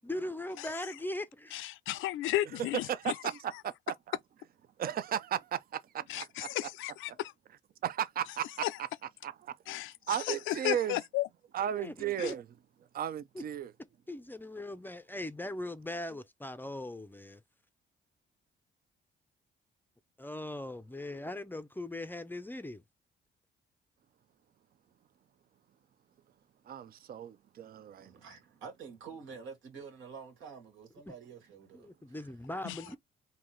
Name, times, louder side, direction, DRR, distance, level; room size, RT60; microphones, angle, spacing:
voice 1, 0.0-1.6 11.7-12.4 13.3-13.5 14.1-17.4 20.2-22.8 31.1-31.2 31.7-33.0, left 1 dB, 10° left, 0.5 m, -40 dB
voice 2, 1.5-3.1 6.1-7.3 8.6-8.7 9.7-11.3 12.2-12.3 32.7-32.8, left 15 dB, 85° left, 0.4 m, -34 dB
voice 3, 2.9-3.5 3.9-4.2 4.8-5.6 5.9-6.5 7.8-8.5 9.2-9.5 10.1-11.0 11.5-12.4 12.9-13.7 26.7-28.1, right 10 dB, 50° right, 0.5 m, -35 dB
voice 4, 28.0-32.3 32.9-33.0, right 5 dB, 80° right, 1.7 m, -48 dB
3.8 x 2.8 x 3.1 m
cardioid pair, 90°, 20 cm